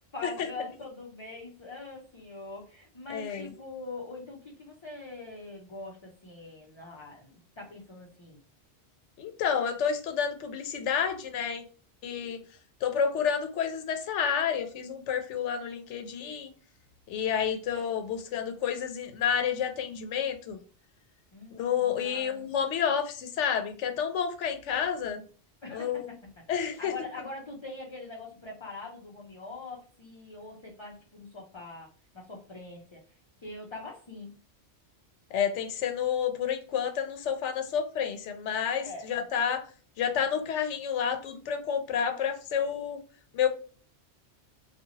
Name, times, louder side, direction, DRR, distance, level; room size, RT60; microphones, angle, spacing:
voice 1, 0.1-8.4 21.3-22.5 25.6-31.9 32.1-33.0 33.4-34.3 38.8-39.1, left 3 dB, 35° left, -2 dB, 0.6 m, -43 dB
voice 2, 3.1-3.5 9.2-11.6 12.0-12.4 12.8-16.5 17.1-20.6 21.5-25.2 25.7-26.1 26.5-26.9 35.3-39.7 40.0-43.0 43.3-43.5, left 7 dB, 90° left, 6 dB, 0.9 m, -30 dB
2.7 x 2.4 x 2.8 m, 0.39 s
omnidirectional pair, 1.2 m